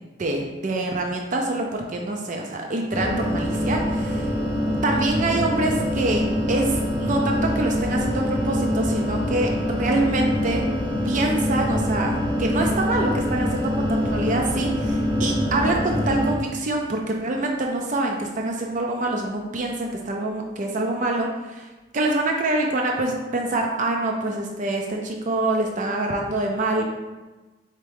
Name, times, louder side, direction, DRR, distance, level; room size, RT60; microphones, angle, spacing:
voice 1, 0.2-4.3 4.8-9.5 9.8-10.6 11.0-12.1 12.4-21.7 21.9-26.8, right 2 dB, 40° right, 1 dB, 0.5 m, -25 dB
sound 1, 2.9-16.3, equal, 25° right, 1.2 m, -24 dB
4.3 x 3.5 x 3.4 m, 1.2 s
head